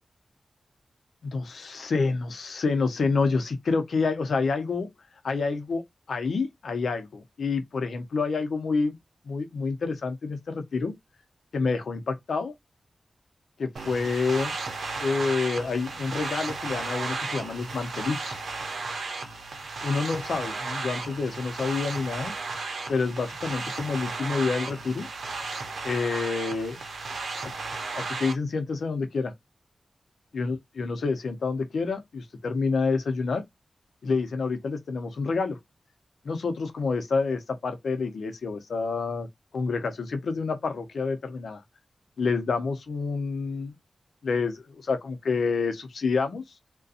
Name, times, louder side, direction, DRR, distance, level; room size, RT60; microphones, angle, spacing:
voice 1, 1.2-4.9 5.2-5.8 6.1-9.0 9.2-10.9 11.5-12.5 13.6-14.5 15.0-18.4 19.8-22.3 22.9-25.1 25.8-26.8 27.9-29.3 30.3-33.4 34.0-35.6 36.2-39.3 39.5-41.6 42.2-43.7 44.2-46.4, left 4 dB, 85° left, 0.6 m, -28 dB
sound 1, 13.8-28.3, right 3 dB, 90° right, 0.6 m, -34 dB
2.4 x 2.2 x 2.5 m
cardioid pair, 65°, 0 cm